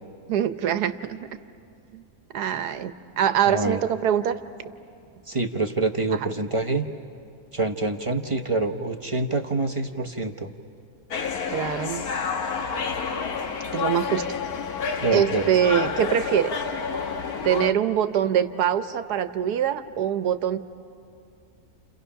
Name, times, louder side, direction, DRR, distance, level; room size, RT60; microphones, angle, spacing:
voice 1, 0.3-1.3 1.9-2.0 2.3-4.4 11.5-12.1 13.7-14.2 15.1-16.5 17.4-20.6, right 9 dB, 80° right, 11 dB, 1.4 m, -24 dB
voice 2, 3.5-3.8 5.3-6.9 7.5-10.5 15.0-15.5, right 3 dB, 25° right, 3 dB, 0.7 m, -26 dB
Paddington train station ambience, 11.1-17.7, left 5 dB, 70° left, 1.7 m, -29 dB
30.0 x 29.5 x 5.7 m, 2.5 s
omnidirectional pair, 1.7 m